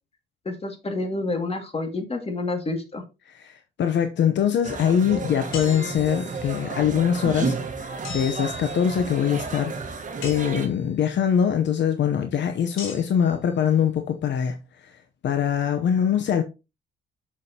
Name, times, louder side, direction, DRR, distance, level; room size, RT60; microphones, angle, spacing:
voice 1, 0.5-3.0, left 2 dB, 30° left, 2.2 m, -29 dB
voice 2, 3.3-16.4, left 8 dB, 65° left, 0.9 m, -23 dB
sound 1, 4.6-10.7, right 4 dB, 40° right, 1.6 m, -32 dB
sound 2, 5.5-6.5 8.0-9.2 10.2-11.0 12.8-13.3, left 5 dB, 90° left, 3.4 m, -39 dB
7.4 x 6.6 x 2.9 m
cardioid pair, 90°, 20 cm